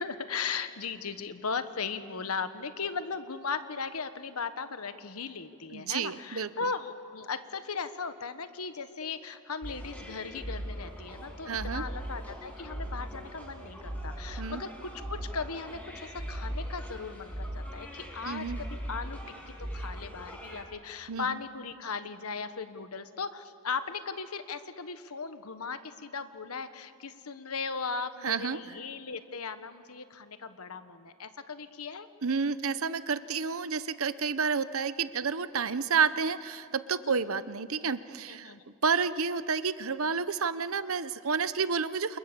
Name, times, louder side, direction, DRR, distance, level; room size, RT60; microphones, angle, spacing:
voice 1, 0.0-19.2 19.5-32.1 37.0-37.2 38.3-38.6, left 5 dB, 85° left, 10 dB, 1.4 m, -37 dB
voice 2, 5.7-6.5 11.5-11.8 14.4-14.6 18.2-18.6 21.1-21.4 28.2-28.6 32.2-38.5 38.8-42.2, right 5 dB, 70° right, 14 dB, 0.9 m, -30 dB
sound 1, 9.6-20.6, equal, 5° left, 6.8 m, -39 dB
29.0 x 28.0 x 6.9 m, 2.7 s
head